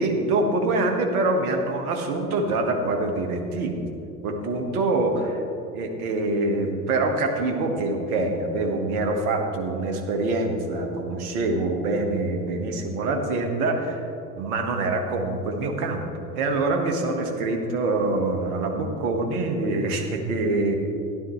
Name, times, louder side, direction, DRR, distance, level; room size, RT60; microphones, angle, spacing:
voice 1, 0.0-3.9 4.2-5.4 5.7-14.1 14.4-20.8, right 2 dB, 70° right, 4 dB, 1.7 m, -25 dB
13.5 x 11.5 x 3.2 m, 2.7 s
hypercardioid pair, 75°, 45 cm